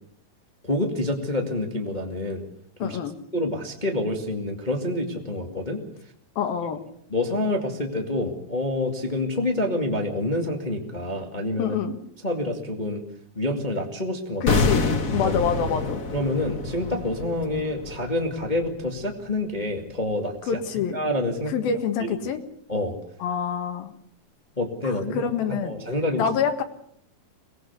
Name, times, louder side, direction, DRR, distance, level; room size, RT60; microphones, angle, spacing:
voice 1, 0.6-2.4 2.8-3.0 3.3-5.8 7.1-11.7 12.2-13.0 13.3-14.6 15.2-15.3 16.1-20.6 20.9-21.5 22.0-22.1 22.7-23.0 24.6-25.2 25.5-26.2, left 1 dB, 20° left, 3 dB, 1.2 m, -27 dB
voice 2, 2.8-3.1 6.4-6.8 11.6-12.0 14.4-14.9 15.1-16.0 20.5-21.0 21.5-22.4 23.2-23.9 24.8-25.7 26.2-26.6, left 7 dB, 70° left, 6 dB, 3.4 m, -26 dB
sound 1, 14.5-19.5 19.7-19.9, left 3 dB, 90° left, 0.7 m, -27 dB
23.5 x 19.5 x 6.8 m, 0.65 s
omnidirectional pair, 4.6 m